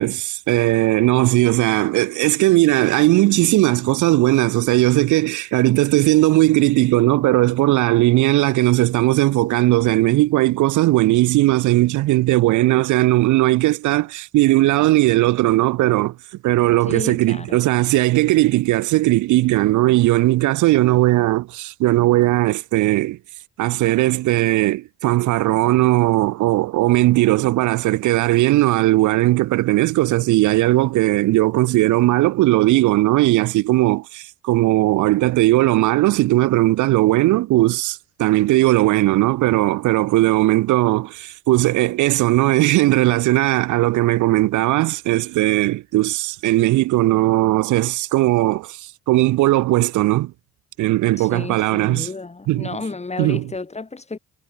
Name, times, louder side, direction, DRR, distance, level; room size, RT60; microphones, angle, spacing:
voice 1, 0.0-16.1 16.4-23.2 23.6-50.3 50.8-52.1 52.5-52.7 53.2-53.4, right 17 dB, 75° right, 0.5 m, -18 dB
voice 2, 16.9-17.6 51.2-54.2, left 3 dB, 20° left, 3.3 m, -32 dB
cardioid pair, 90°, 30 cm